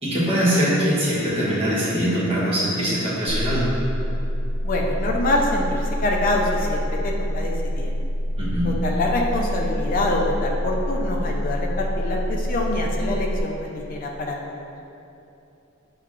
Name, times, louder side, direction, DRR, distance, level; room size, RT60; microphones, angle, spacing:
voice 1, 0.0-3.6 8.4-8.6, equal, 30° right, -8 dB, 1.0 m, -22 dB
sound 1, 3.3-13.4, equal, 80° right, 1.2 m, -26 dB
voice 2, 4.6-7.9 8.6-14.7, left 1 dB, 40° left, 0 dB, 0.4 m, -25 dB
6.3 x 2.2 x 2.4 m, 2.9 s
head